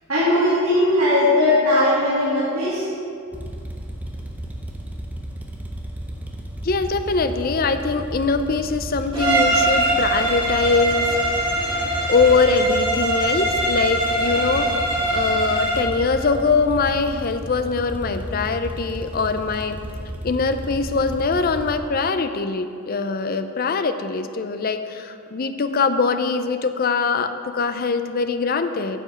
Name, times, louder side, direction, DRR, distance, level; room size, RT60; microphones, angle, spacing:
voice 1, 0.1-2.9, left 1 dB, 75° right, -10 dB, 2.6 m, -18 dB
sound 1, 3.3-21.8, equal, 5° right, 0.8 m, -34 dB
voice 2, 6.6-11.2 12.1-14.7 15.1-19.8 20.2-29.0, left 4 dB, 45° left, 9 dB, 0.5 m, -22 dB
Bowed string instrument, 9.1-15.9, right 1 dB, 20° right, 2.1 m, -22 dB
9.5 x 5.2 x 7.9 m, 2.4 s
head